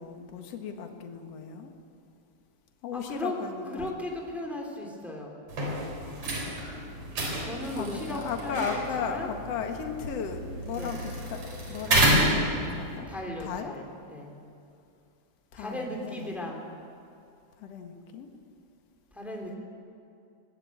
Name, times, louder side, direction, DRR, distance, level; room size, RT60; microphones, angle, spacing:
voice 1, 0.0-1.7 2.8-3.9 7.8-11.4 11.7-13.1 13.4-13.7 15.5-16.4 17.6-18.3, left 6 dB, 60° left, 5 dB, 2.6 m, -36 dB
voice 2, 2.9-3.4 3.7-5.3 7.4-9.3 10.7-11.0 13.1-14.4 15.5-16.8 19.1-19.6, left 1 dB, ahead, 0 dB, 3.0 m, -37 dB
sound 1, 5.5-13.0, right 1 dB, 70° right, 5.2 m, -29 dB
20.5 x 18.5 x 8.7 m, 2.6 s
omnidirectional pair, 3.3 m